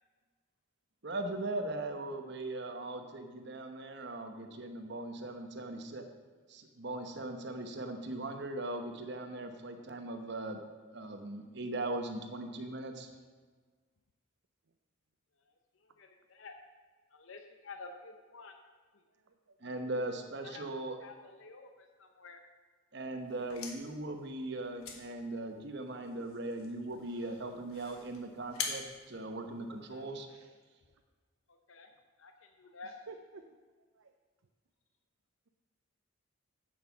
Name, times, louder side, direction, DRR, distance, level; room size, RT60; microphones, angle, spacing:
voice 1, 1.0-6.0 6.5-10.6 10.9-13.1 19.6-21.0 22.9-30.3, right 2 dB, 55° right, 6 dB, 1.0 m, -39 dB
voice 2, 15.4-16.5 17.1-18.6 18.9-19.0 20.4-20.7 21.0-22.4 29.7-30.0 31.5-31.9 32.2-32.9, left 3 dB, 65° left, 5 dB, 0.7 m, -51 dB
voice 3, 19.2-19.6 30.2-30.5 32.8-33.4 33.9-34.1, right 4 dB, 75° right, 5 dB, 0.6 m, -52 dB
sound 1, 23.3-30.1, left 6 dB, 85° left, 1.3 m, -45 dB
7.8 x 7.7 x 6.0 m, 1.5 s
head